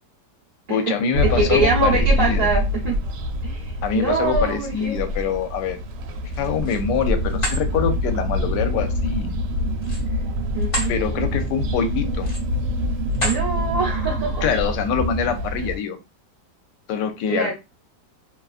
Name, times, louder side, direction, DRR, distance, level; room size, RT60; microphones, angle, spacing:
voice 1, 0.7-2.5 3.8-5.8 6.2-9.4 10.9-12.3 14.4-16.0 16.9-17.5, left 7 dB, 75° left, 8 dB, 1.1 m, -24 dB
sound 1, 1.1-15.8, equal, 75° right, 1.2 m, -25 dB
voice 2, 1.2-3.0 3.4-5.0 10.5-10.9 13.2-14.4 15.6-15.7 17.3-17.5, right 3 dB, 45° right, -5 dB, 0.5 m, -24 dB
sound 2, 6.3-6.9 7.3-7.6 9.8-10.9 11.4-11.6 12.1-12.6 13.1-13.5, equal, 45° left, 0.4 m, -29 dB
2.9 x 2.3 x 2.4 m, 0.26 s
omnidirectional pair, 1.9 m